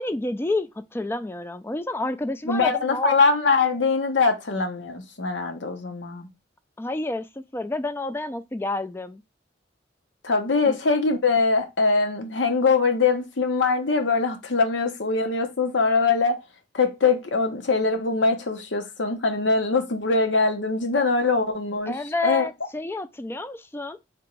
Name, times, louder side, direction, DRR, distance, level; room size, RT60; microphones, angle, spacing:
voice 1, 0.0-3.2 6.8-9.2 10.7-10.8 21.9-24.0, left 2 dB, 15° left, 0.3 m, -29 dB
voice 2, 2.5-6.3 10.2-16.4 16.7-21.9 22.2-22.5, left 4 dB, 85° left, 0.9 m, -22 dB
3.5 x 2.9 x 4.5 m
head